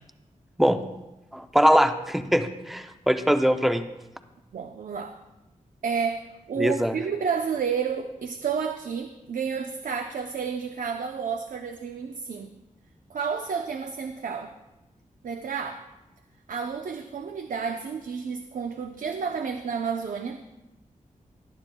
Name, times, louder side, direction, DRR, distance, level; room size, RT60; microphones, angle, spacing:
voice 1, 1.3-3.8 6.6-6.9, equal, ahead, 8 dB, 0.6 m, -22 dB
voice 2, 4.5-5.2 5.8-12.5 13.1-14.5 15.2-15.8 16.5-20.5, right 6 dB, 85° right, 5 dB, 0.7 m, -31 dB
19.0 x 11.5 x 2.3 m, 0.99 s
wide cardioid pair, 135°, 13 cm